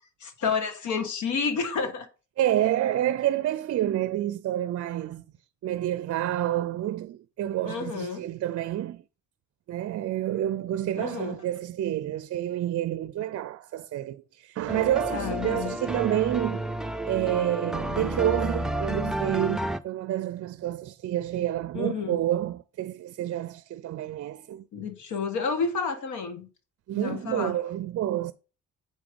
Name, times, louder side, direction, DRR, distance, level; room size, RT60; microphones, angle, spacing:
voice 1, 0.2-2.1 7.6-8.2 10.9-11.4 15.1-15.7 21.7-22.2 24.7-26.5 27.0-27.6, left 5 dB, 75° left, 1.5 m, -30 dB
voice 2, 2.4-5.2 5.6-9.0 9.7-16.6 17.1-24.7 26.9-28.3, right 12 dB, 55° right, 0.5 m, -28 dB
sound 1, 14.7-19.8, right 1 dB, ahead, 0.5 m, -31 dB
7.4 x 5.0 x 5.1 m
cardioid pair, 90°, 30 cm